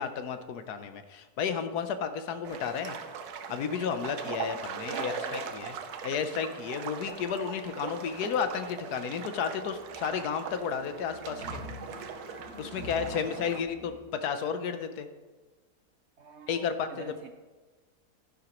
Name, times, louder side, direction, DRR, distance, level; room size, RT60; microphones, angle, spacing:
voice 1, 0.0-2.9 3.5-5.7 6.0-11.6 12.6-15.1 16.5-17.1, left 7 dB, 80° left, 9 dB, 1.3 m, -32 dB
sound 1, 2.4-13.6, right 6 dB, 75° right, 1.3 m, -40 dB
voice 2, 4.9-5.6 13.0-13.6 16.2-17.3, right 4 dB, 60° right, 7 dB, 0.7 m, -44 dB
sound 2, 8.9-14.1, left 1 dB, 45° left, 3.7 m, -47 dB
11.0 x 10.5 x 3.0 m, 1.3 s
omnidirectional pair, 1.7 m